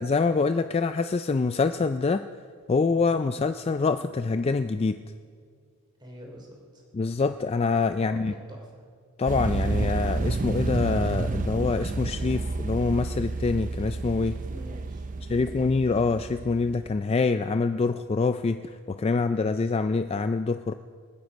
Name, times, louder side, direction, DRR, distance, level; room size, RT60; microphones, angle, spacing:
voice 1, 0.0-2.2 2.7-5.0 6.9-8.3 9.2-14.4 15.3-20.7, left 4 dB, 25° left, 10 dB, 0.3 m, -25 dB
voice 2, 6.0-6.8 8.0-8.9 14.2-15.5, equal, 20° right, 1 dB, 2.9 m, -46 dB
sound 1, 9.3-17.0, right 3 dB, 35° right, 0.5 m, -30 dB
28.5 x 9.6 x 5.2 m, 2.1 s
head